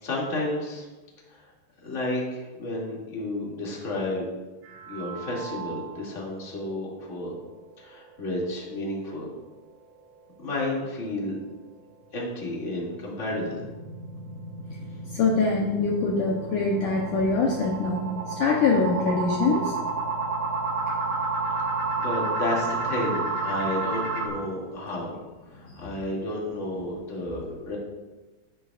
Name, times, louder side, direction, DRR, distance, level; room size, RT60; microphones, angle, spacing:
voice 1, 0.0-0.9 1.3-1.4 1.8-4.3 4.9-7.3 7.8-9.3 10.4-11.3 12.1-13.6 22.0-25.2 25.5-27.8, left 1 dB, 25° left, -5 dB, 2.1 m, -31 dB
sound 1, 4.7-6.1 6.5-6.6 7.0-7.1 7.6-7.7 12.5-24.3, right 3 dB, 55° right, 2.1 m, -31 dB
voice 2, 15.1-19.7 25.6-25.7, left 3 dB, 70° left, -1 dB, 2.2 m, -24 dB
13.0 x 10.5 x 2.5 m, 1.2 s
omnidirectional pair, 4.4 m